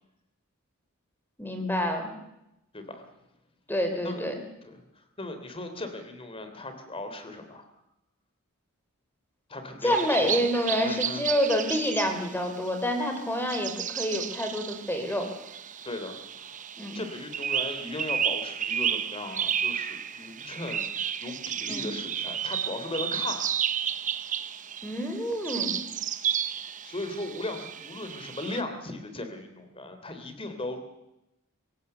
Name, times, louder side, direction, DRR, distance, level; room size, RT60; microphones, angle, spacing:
voice 1, 1.4-2.1 3.7-4.3 9.8-15.3 16.8-17.0 21.7-21.9 24.8-25.8, equal, 10° left, 5 dB, 3.4 m, -28 dB
voice 2, 4.6-7.7 9.5-10.4 10.8-11.2 15.8-16.6 16.9-20.8 21.2-23.4 26.8-30.8, left 2 dB, 25° left, 7 dB, 3.2 m, -37 dB
sound 1, 9.9-28.6, right 8 dB, 35° right, 0.9 m, -32 dB
24.5 x 16.5 x 6.9 m, 0.87 s
head